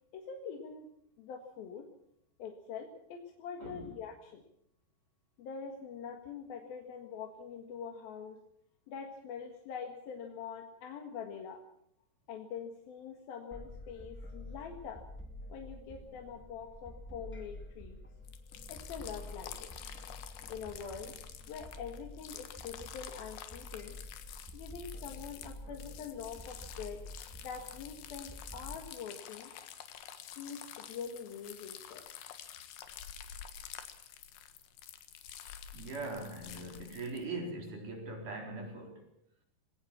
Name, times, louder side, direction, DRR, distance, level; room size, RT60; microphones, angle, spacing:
voice 1, 0.1-0.9 1.2-1.9 2.4-4.4 5.4-8.4 8.9-11.6 12.3-15.0 15.5-18.0 18.7-19.7 20.5-21.2 21.5-24.0 24.5-27.0 27.4-29.5 30.4-32.0, left 6 dB, 70° left, 3 dB, 3.4 m, -44 dB
voice 2, 3.6-3.9 35.7-39.1, right 2 dB, 55° right, 2 dB, 5.6 m, -41 dB
sound 1, 13.5-28.8, left 1 dB, 10° left, 0.8 m, -49 dB
sound 2, 18.3-37.3, left 10 dB, 85° left, 3.7 m, -49 dB
21.5 x 18.0 x 7.3 m, 0.72 s
omnidirectional pair, 4.6 m